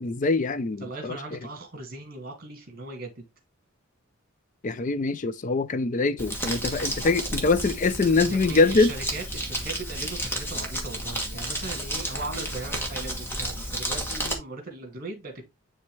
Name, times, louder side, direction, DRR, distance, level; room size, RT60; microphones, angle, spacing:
voice 1, 0.0-1.2 4.6-8.9, left 3 dB, 35° left, 0.4 m, -23 dB
voice 2, 0.8-3.2 8.2-15.5, right 3 dB, 40° right, 2.3 m, -38 dB
Crumpling crinkling, 6.2-14.3, equal, 10° left, 1.4 m, -32 dB
9.9 x 3.5 x 3.3 m
head